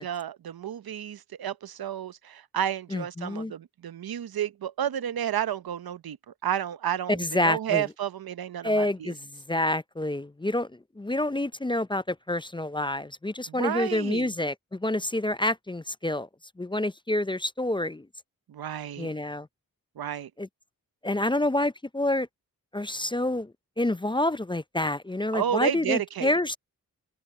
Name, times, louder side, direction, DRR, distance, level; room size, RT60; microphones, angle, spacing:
voice 1, 0.0-9.1 13.5-14.3 18.5-19.1 20.0-20.3 25.3-26.3, right 10 dB, 85° right, 0.8 m, -31 dB
voice 2, 2.9-3.5 7.1-7.8 8.6-10.7 11.0-16.3 16.6-18.1 19.0-19.5 20.4-20.5 21.0-22.3 22.7-26.6, left 1 dB, 15° left, 0.5 m, -28 dB
cardioid pair, 40°, 35 cm